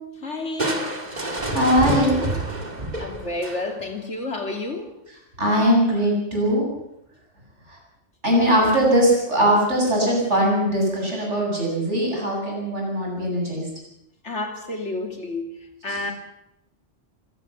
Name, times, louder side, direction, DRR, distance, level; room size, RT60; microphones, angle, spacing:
voice 1, 0.2-1.1 3.0-5.0 14.2-16.1, left 2 dB, 70° left, 5 dB, 3.2 m, -30 dB
Crushing, 0.6-4.0, right 2 dB, 35° right, 2.4 m, -28 dB
voice 2, 1.3-2.2 5.4-6.7 7.7-7.8 8.2-13.7, equal, 75° right, -1 dB, 8.5 m, -20 dB
26.0 x 17.0 x 7.1 m, 0.83 s
omnidirectional pair, 1.2 m